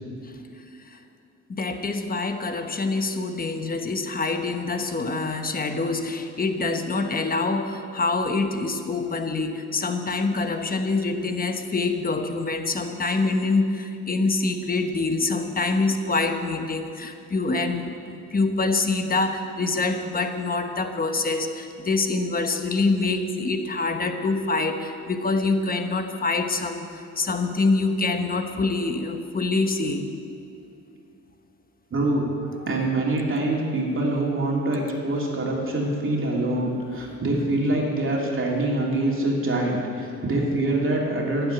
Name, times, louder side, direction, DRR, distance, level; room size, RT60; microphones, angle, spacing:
voice 1, 1.5-30.1 37.1-37.2, left 3 dB, 30° left, 7 dB, 1.1 m, -25 dB
voice 2, 31.9-32.3 32.6-41.5, right 2 dB, 45° right, -2 dB, 2.9 m, -25 dB
12.0 x 8.1 x 9.1 m, 2.6 s
cardioid pair, 90°, 30 cm